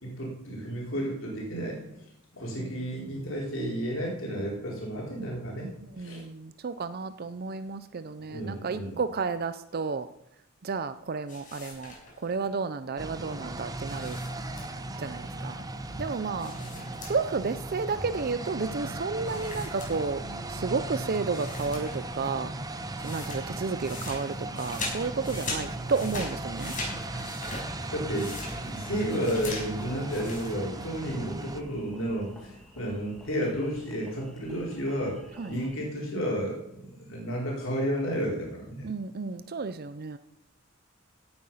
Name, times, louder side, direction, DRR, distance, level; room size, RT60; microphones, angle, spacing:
voice 1, 0.0-1.8 2.3-5.7 6.0-6.2 8.3-9.0 15.9-16.0 27.9-28.3 28.6-35.2 35.5-38.9, equal, 70° left, -3 dB, 4.5 m, -32 dB
voice 2, 6.0-10.1 10.6-14.2 15.0-15.6 16.0-16.5 17.0-20.2 20.5-22.5 23.0-26.7 35.4-35.6 38.8-40.2, right 4 dB, 50° right, 12 dB, 0.5 m, -32 dB
sound 1, 11.3-12.4 13.8-15.0 16.4-17.5 17.8-17.9 19.2-20.4 20.9-21.0 21.3-22.2 22.4-30.5, left 2 dB, 40° left, 5.8 m, -40 dB
sound 2, 13.0-31.6, right 2 dB, 20° right, 0.9 m, -37 dB
Engine, 26.8-35.8, left 1 dB, ahead, 2.7 m, -49 dB
16.5 x 8.8 x 5.6 m, 0.80 s
head